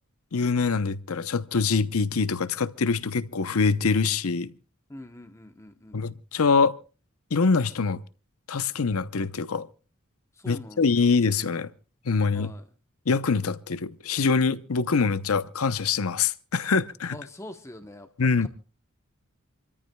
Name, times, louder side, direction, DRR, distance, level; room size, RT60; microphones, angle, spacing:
voice 1, 0.3-4.5 5.9-6.8 7.3-8.0 8.5-9.7 10.5-11.7 12.1-12.5 13.1-17.2 18.2-18.5, left 4 dB, 85° left, 0.8 m, -24 dB
voice 2, 4.9-6.0 10.3-10.8 12.3-12.6 17.1-18.5, left 1 dB, 15° left, 0.9 m, -44 dB
28.0 x 13.5 x 2.3 m
head